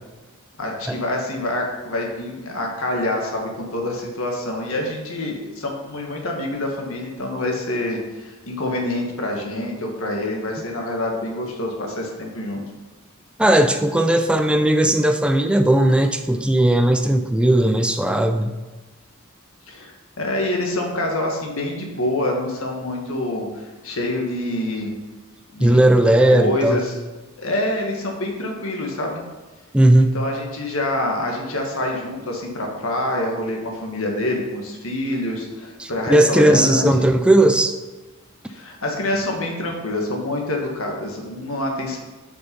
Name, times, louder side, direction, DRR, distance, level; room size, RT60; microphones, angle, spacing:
voice 1, 0.6-12.6 19.7-24.9 25.5-25.8 26.3-26.9 27.4-29.2 30.1-37.1 38.5-42.0, left 1 dB, 70° left, 1 dB, 1.6 m, -26 dB
voice 2, 13.4-18.5 25.6-26.8 29.7-30.2 35.8-37.7, right 1 dB, 5° right, 6 dB, 0.4 m, -17 dB
6.9 x 5.9 x 5.2 m, 1.2 s
head